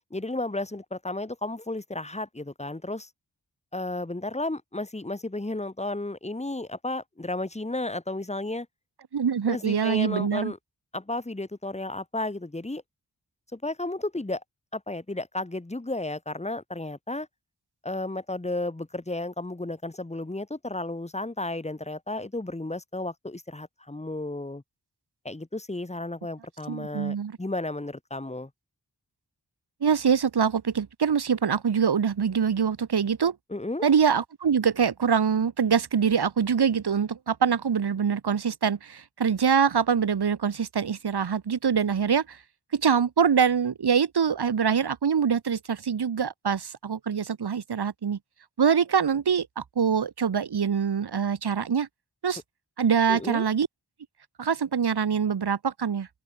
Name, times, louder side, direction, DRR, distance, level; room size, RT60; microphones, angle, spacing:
voice 1, 0.1-3.1 3.7-8.7 9.5-10.6 10.9-12.8 13.5-14.4 14.7-17.3 17.8-24.6 25.3-28.5 33.5-33.9 53.1-53.5, left 2 dB, 15° left, 1.8 m, -33 dB
voice 2, 9.1-10.5 26.7-27.4 29.8-33.3 33.8-42.4 42.7-48.2 48.6-51.9 52.2-52.4 52.8-53.7 54.4-56.1, right 7 dB, 80° right, 1.5 m, -24 dB
wide cardioid pair, 60°, 39 cm